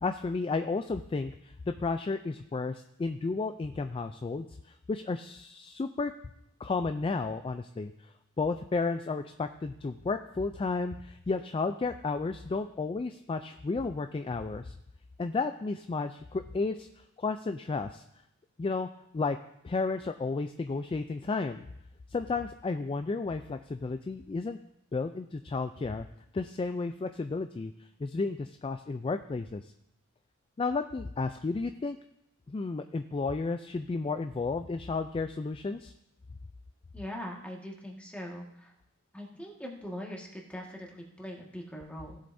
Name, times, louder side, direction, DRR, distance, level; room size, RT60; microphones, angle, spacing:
voice 1, 0.0-6.1 6.6-14.7 15.2-16.9 17.2-18.0 18.6-18.9 19.1-19.4 19.6-21.7 22.1-24.6 24.9-26.1 26.3-29.7 30.6-32.0 32.5-35.9, left 3 dB, 25° left, 8 dB, 0.3 m, -32 dB
voice 2, 36.9-38.7 39.1-42.2, equal, 5° left, -1 dB, 1.6 m, -41 dB
17.0 x 7.8 x 2.6 m, 0.80 s
head